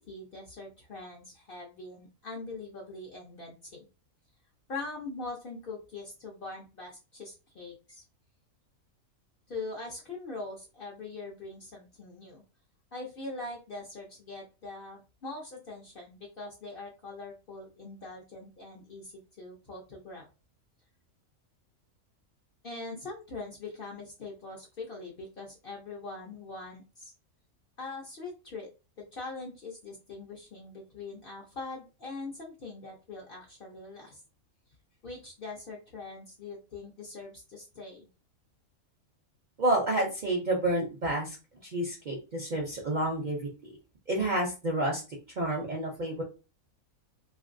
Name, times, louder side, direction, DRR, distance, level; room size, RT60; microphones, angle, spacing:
voice 1, 0.1-3.9 4.7-8.0 9.5-12.4 12.9-20.3 22.6-27.1 27.8-28.7 29.0-34.2 35.0-38.1, left 3 dB, 55° left, -1 dB, 0.6 m, -42 dB
voice 2, 39.6-41.4 41.6-43.8 44.1-45.0 45.4-46.2, right 1 dB, 50° right, -1 dB, 0.5 m, -29 dB
2.9 x 2.5 x 2.5 m, 0.31 s
omnidirectional pair, 1.5 m